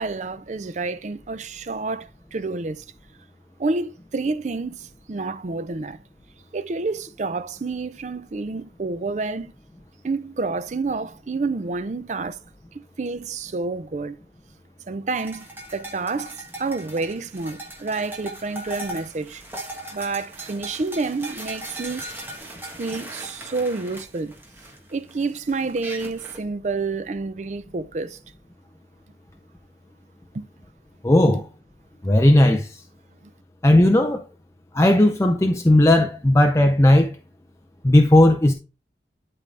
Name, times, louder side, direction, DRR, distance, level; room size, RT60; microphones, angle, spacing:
voice 1, 0.0-2.8 3.6-6.0 6.5-9.5 10.0-12.4 12.7-14.2 14.9-15.5 15.7-19.4 19.9-22.0 22.6-24.3 24.9-28.2 30.3-30.5 31.3-31.4, right 3 dB, 40° right, 0.4 m, -29 dB
sound 1, 15.2-26.4, right 1 dB, 10° right, 1.3 m, -38 dB
voice 2, 31.0-31.4 32.0-32.7 33.6-34.2 34.7-37.2 37.8-38.5, left 1 dB, 15° left, 0.5 m, -16 dB
11.5 x 3.9 x 3.2 m
head